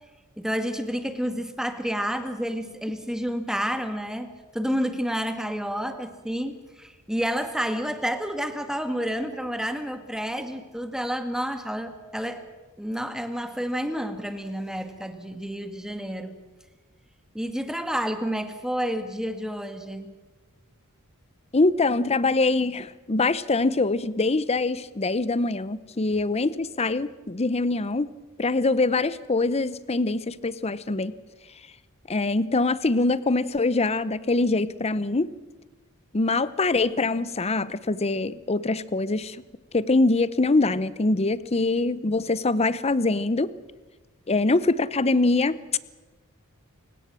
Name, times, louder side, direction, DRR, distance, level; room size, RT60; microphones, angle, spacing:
voice 1, 0.4-12.4 12.8-16.4 17.3-20.1, equal, 5° right, 8 dB, 1.7 m, -30 dB
voice 2, 21.5-28.1 28.4-31.1 32.1-35.3 36.1-39.4 39.7-43.5 44.3-45.8, left 3 dB, 30° left, 17 dB, 0.7 m, -24 dB
28.5 x 17.0 x 7.6 m, 1.2 s
head